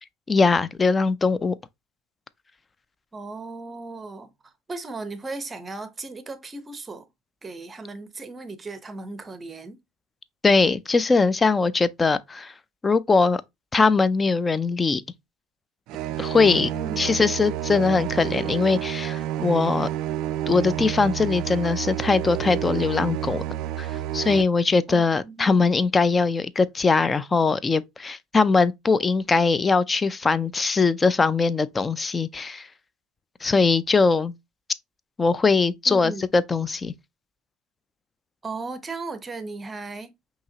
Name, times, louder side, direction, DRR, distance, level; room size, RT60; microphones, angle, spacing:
voice 1, 0.3-1.6 10.4-12.5 12.8-13.4 13.7-15.0 16.2-16.7 17.0-19.9 20.5-23.4 23.8-32.7 33.4-34.3 35.2-36.9, left 4 dB, 20° left, 0.4 m, -21 dB
voice 2, 3.1-7.1 7.4-9.8 16.7-17.1 24.9-25.7 35.9-36.2 38.4-40.1, right 3 dB, 20° right, 0.8 m, -36 dB
sound 1, 15.9-24.4, right 12 dB, 60° right, 0.4 m, -29 dB
5.4 x 2.9 x 2.7 m
supercardioid pair, 105°, 0 cm